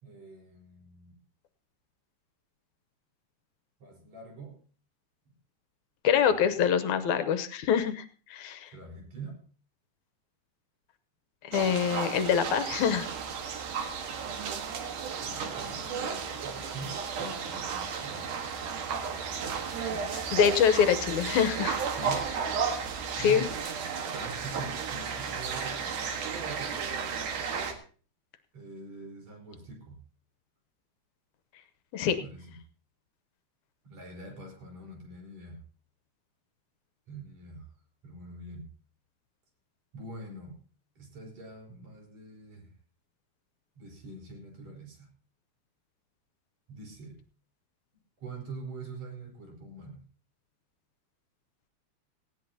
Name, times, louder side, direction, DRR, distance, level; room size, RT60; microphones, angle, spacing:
voice 1, 0.0-1.2 3.8-4.6 6.2-6.3 8.7-9.4 15.2-18.2 21.9-22.3 23.1-23.6 24.1-27.4 28.5-30.0 32.0-32.6 33.8-35.6 37.1-37.7 38.0-38.7 39.9-40.6 41.0-42.7 43.8-45.1 46.7-47.2 48.2-50.0, right 2 dB, 60° right, 0 dB, 5.5 m, -44 dB
voice 2, 6.0-8.1 8.3-8.7 11.4-13.1 19.9-21.8 23.2-23.5 31.9-32.2, left 8 dB, 75° left, 11 dB, 2.3 m, -25 dB
sound 1, 11.5-27.7, right 6 dB, 85° right, 3.1 m, -34 dB
18.5 x 16.0 x 2.8 m, 0.38 s
omnidirectional pair, 3.5 m